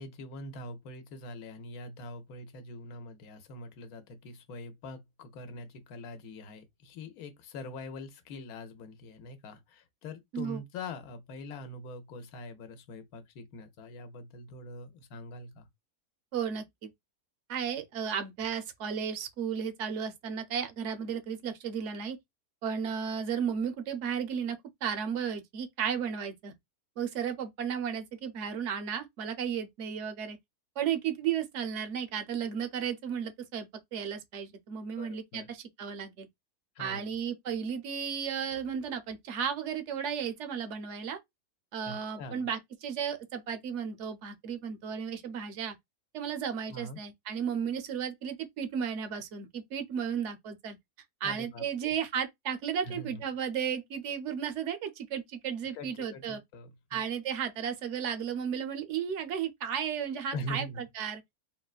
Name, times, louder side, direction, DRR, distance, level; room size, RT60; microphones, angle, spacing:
voice 1, 0.0-15.7 35.0-35.5 36.7-37.1 41.9-42.5 46.7-47.0 51.2-52.0 52.8-53.2 55.7-57.0 60.3-60.8, left 2 dB, 80° left, 1.2 m, -43 dB
voice 2, 16.3-16.9 17.5-22.2 22.6-26.5 27.0-30.4 30.8-36.3 36.8-41.2 41.7-45.8 46.1-50.8 51.2-56.4 56.9-60.7 60.9-61.2, right 7 dB, 60° right, 0.8 m, -34 dB
3.8 x 2.1 x 2.3 m
omnidirectional pair, 1.5 m